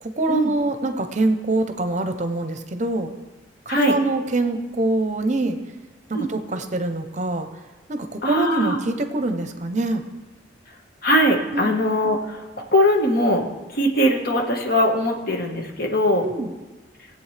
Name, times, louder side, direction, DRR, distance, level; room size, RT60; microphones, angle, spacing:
voice 1, 0.0-3.1 3.7-5.6 6.1-7.5 7.9-10.0 11.5-11.8 16.2-16.5, right 2 dB, 40° right, 8 dB, 0.7 m, -24 dB
voice 2, 8.2-8.8 11.0-12.4 12.7-13.4 13.7-16.3, equal, 55° left, 2 dB, 1.5 m, -20 dB
20.0 x 7.9 x 3.3 m, 1.2 s
head